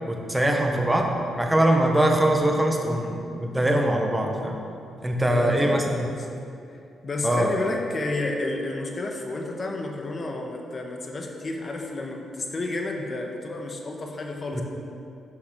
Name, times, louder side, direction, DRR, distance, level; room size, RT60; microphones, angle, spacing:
voice 1, 0.1-4.6 5.0-6.0 7.2-7.5 14.5-14.6, right 1 dB, 10° right, 1 dB, 1.3 m, -22 dB
voice 2, 5.3-6.8 7.0-14.6, left 2 dB, 40° left, 1 dB, 1.4 m, -31 dB
10.0 x 5.8 x 6.7 m, 2.5 s
cardioid pair, 90°, 0 cm